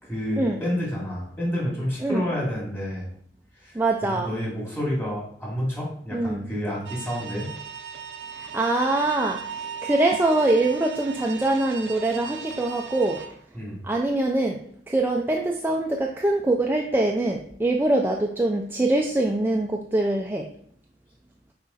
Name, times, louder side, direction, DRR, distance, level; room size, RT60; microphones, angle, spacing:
voice 1, 0.0-3.1 3.6-7.5 13.5-13.8, equal, 15° left, -5 dB, 3.0 m, -29 dB
voice 2, 3.7-4.3 6.1-6.5 8.4-13.3 13.8-14.6 14.9-20.5, right 2 dB, 10° right, 1 dB, 0.5 m, -23 dB
sound 1, 6.9-13.3, right 7 dB, 85° right, 0.7 m, -37 dB
5.8 x 5.2 x 4.2 m, 0.64 s
head